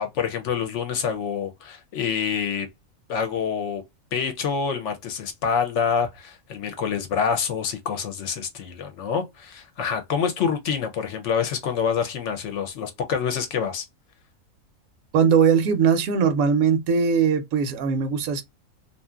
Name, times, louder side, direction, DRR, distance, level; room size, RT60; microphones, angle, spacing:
voice 1, 0.0-2.7 3.1-3.8 4.1-13.8, left 6 dB, 65° left, 0.8 m, -26 dB
voice 2, 15.1-18.4, right 6 dB, 80° right, 1.0 m, -20 dB
2.7 x 2.5 x 2.2 m
omnidirectional pair, 1.5 m